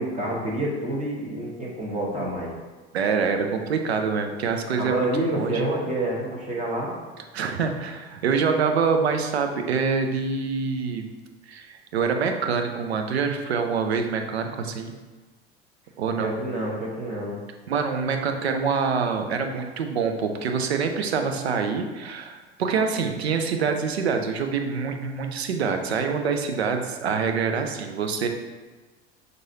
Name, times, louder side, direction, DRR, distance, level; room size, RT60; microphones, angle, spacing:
voice 1, 0.0-2.5 4.8-6.9 16.2-17.4, right 1 dB, 25° right, -4 dB, 1.1 m, -28 dB
voice 2, 2.9-5.7 7.3-11.0 11.5-14.9 16.0-16.3 17.7-28.3, right 5 dB, 80° right, 5 dB, 0.5 m, -25 dB
6.1 x 2.6 x 2.7 m, 1.3 s
figure-of-eight pair, 70°, 31 cm